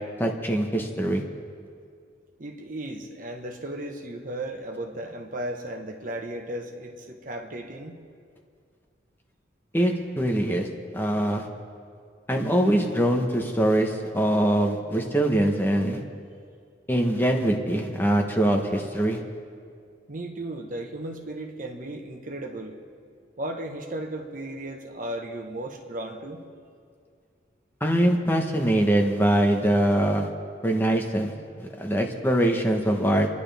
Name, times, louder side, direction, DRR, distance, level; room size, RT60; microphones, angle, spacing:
voice 1, 0.2-1.2 9.7-10.7 10.9-11.5 12.3-16.0 16.9-19.2 27.8-30.3 30.6-31.3 31.6-33.3, right 1 dB, 10° left, 2 dB, 1.1 m, -23 dB
voice 2, 2.4-8.0 20.1-22.8 23.4-26.4, right 1 dB, 45° right, 3 dB, 1.3 m, -35 dB
29.5 x 11.0 x 3.5 m, 2.2 s
head